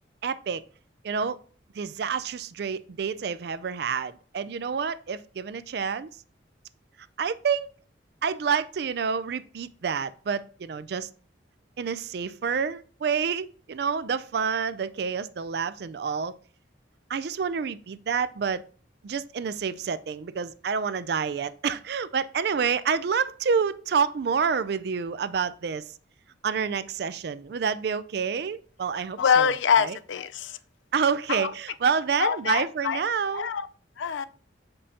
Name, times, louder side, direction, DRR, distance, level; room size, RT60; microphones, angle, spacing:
voice 1, 0.2-0.6 1.0-1.4 1.7-6.1 7.2-7.7 8.2-11.1 11.8-16.3 17.1-18.6 19.0-25.9 26.4-30.0 30.9-33.5, right 6 dB, 60° right, 0.4 m, -28 dB
voice 2, 29.2-30.6 31.3-31.5 32.2-33.0 33.3-33.7 34.0-34.3, left 7 dB, 80° left, 0.4 m, -24 dB
6.8 x 5.3 x 2.8 m
head